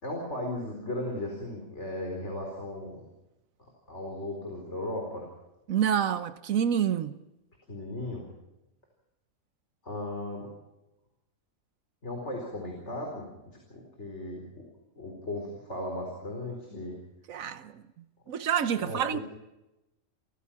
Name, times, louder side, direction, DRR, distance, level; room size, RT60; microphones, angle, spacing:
voice 1, 0.0-3.0 3.9-5.3 7.7-8.2 9.8-10.5 12.0-14.6 15.0-17.0 18.8-19.2, left 1 dB, 60° left, 4.7 m, -36 dB
voice 2, 5.7-7.1 17.3-17.8 18.3-19.2, right 9 dB, 90° right, 1.3 m, -27 dB
30.0 x 15.5 x 5.9 m
omnidirectional pair, 1.4 m